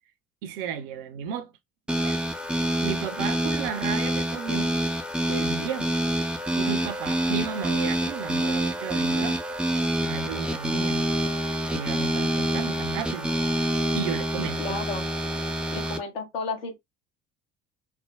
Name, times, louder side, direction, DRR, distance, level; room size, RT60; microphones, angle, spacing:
voice 1, 0.4-1.5 2.0-2.2 2.4-4.7 5.3-5.9 6.5-9.4 10.0-11.0 11.4-13.3 13.9-14.8, right 8 dB, 65° right, 0.5 m, -34 dB
sound 1, 1.9-16.0, right 1 dB, 5° right, 0.4 m, -27 dB
voice 2, 14.4-15.1 15.7-16.8, left 4 dB, 75° left, 1.1 m, -33 dB
3.4 x 2.0 x 2.2 m
figure-of-eight pair, 60°, 30 cm